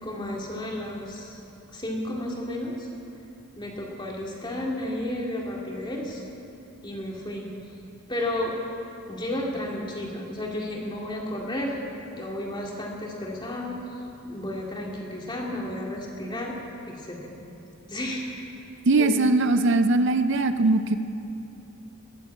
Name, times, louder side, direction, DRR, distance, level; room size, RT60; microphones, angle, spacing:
voice 1, 0.0-1.4 1.7-2.9 3.5-6.2 6.8-7.5 8.1-8.6 9.1-11.8 12.1-13.8 14.2-16.6 16.9-17.3 17.9-18.4 19.0-19.3, left 1 dB, 20° left, -2 dB, 2.3 m, -32 dB
voice 2, 18.9-21.0, right 2 dB, 55° right, 10 dB, 0.5 m, -21 dB
21.0 x 8.4 x 8.4 m, 2.8 s
head